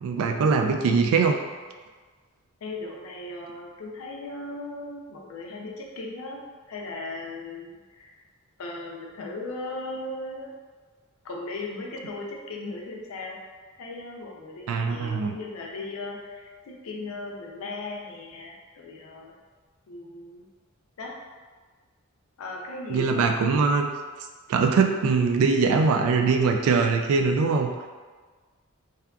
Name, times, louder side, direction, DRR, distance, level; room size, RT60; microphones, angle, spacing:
voice 1, 0.0-1.4 14.7-15.3 22.9-23.9 24.5-27.7, right 4 dB, 85° right, 9 dB, 0.3 m, -22 dB
voice 2, 2.6-6.4 6.7-8.2 8.6-10.5 11.2-13.4 13.7-19.3 19.9-20.4 21.0-21.2 22.4-23.3, left 2 dB, 90° left, -1 dB, 0.4 m, -37 dB
2.7 x 2.3 x 2.3 m, 1.4 s
head